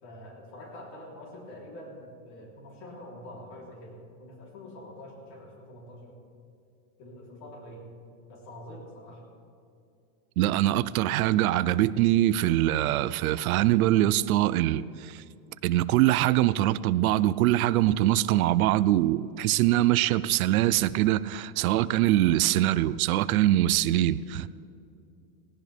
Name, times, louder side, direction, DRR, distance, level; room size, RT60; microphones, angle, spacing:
voice 1, 0.0-6.2 7.0-7.9 8.3-9.3, left 1 dB, 40° left, -1 dB, 3.6 m, -45 dB
voice 2, 10.4-15.2 15.6-24.5, right 14 dB, 80° right, 16 dB, 0.6 m, -23 dB
18.0 x 17.0 x 3.5 m, 2.5 s
supercardioid pair, 165°, 42 cm